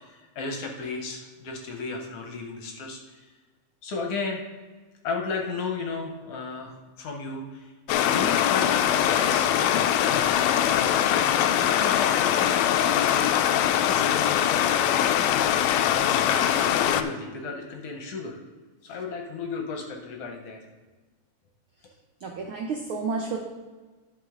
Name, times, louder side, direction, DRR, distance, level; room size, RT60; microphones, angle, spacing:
voice 1, 0.0-3.3 3.8-4.4 5.0-13.4 13.8-15.3 15.8-18.4 18.8-20.6, left 4 dB, 65° left, 2 dB, 1.7 m, -35 dB
Stream, 7.9-17.0, left 10 dB, 80° left, 1.6 m, -22 dB
voice 2, 22.2-23.4, right 4 dB, 90° right, 1 dB, 1.1 m, -30 dB
11.0 x 5.4 x 3.6 m, 1.3 s
omnidirectional pair, 3.4 m